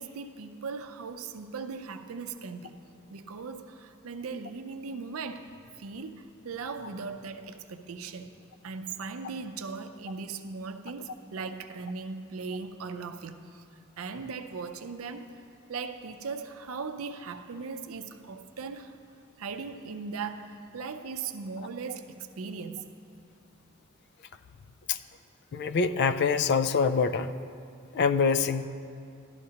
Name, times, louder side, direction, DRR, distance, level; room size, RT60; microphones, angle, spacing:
voice 1, 0.0-2.8 3.1-8.3 8.6-13.6 14.0-15.4 15.7-18.9 19.4-22.9, right 4 dB, 80° right, 7 dB, 0.5 m, -38 dB
voice 2, 25.5-27.3 27.9-28.7, left 5 dB, 55° left, 12 dB, 0.3 m, -25 dB
12.5 x 11.5 x 2.9 m, 2.4 s
head